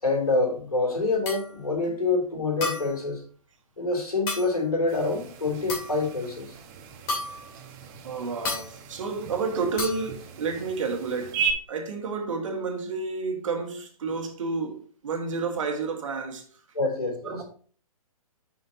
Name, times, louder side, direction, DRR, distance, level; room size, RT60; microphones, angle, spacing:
voice 1, 0.0-3.2 3.8-6.5 16.7-17.3, left 3 dB, 85° left, 3.0 m, -26 dB
sound 1, 1.3-1.5 2.6-3.0 4.3-4.6 5.7-6.1 7.1-7.5 8.4-8.7 9.8-10.1, left 3 dB, 30° left, 2.7 m, -32 dB
sound 2, 4.9-11.5, right 7 dB, 30° right, 1.0 m, -36 dB
voice 2, 8.0-16.6 17.2-17.4, right 4 dB, 60° right, 1.8 m, -31 dB
8.9 x 5.7 x 2.8 m
figure-of-eight pair, 125°, 19 cm